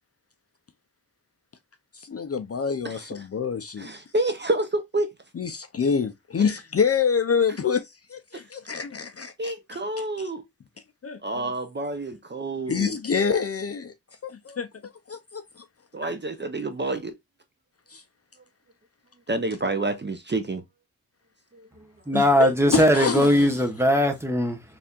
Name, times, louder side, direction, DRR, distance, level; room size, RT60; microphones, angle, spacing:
voice 1, 1.9-3.9 5.4-10.0 11.0-11.4 12.7-13.9 14.2-14.7 15.1-15.6 16.0-16.1 17.9-18.0 22.1-23.5, left 6 dB, 40° left, 0.5 m, -27 dB
voice 2, 3.8-5.1 8.3-8.4 9.4-10.4 11.2-13.0 15.9-17.1 19.3-20.6 21.5-21.9, right 2 dB, 30° right, 0.6 m, -28 dB
voice 3, 22.1-24.6, equal, 5° right, 0.9 m, -20 dB
4.1 x 3.4 x 2.3 m
wide cardioid pair, 105°, 36 cm